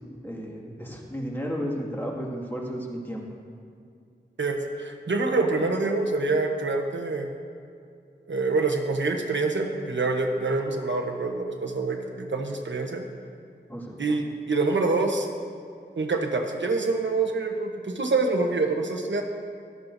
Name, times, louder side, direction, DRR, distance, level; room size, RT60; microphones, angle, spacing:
voice 1, 0.2-3.3 13.7-14.0, equal, 10° left, -3 dB, 2.1 m, -33 dB
voice 2, 4.4-7.3 8.3-13.0 14.0-15.3 16.0-19.2, right 3 dB, 90° right, 2 dB, 1.1 m, -26 dB
14.5 x 12.5 x 2.7 m, 2.4 s
wide cardioid pair, 60°, 18 cm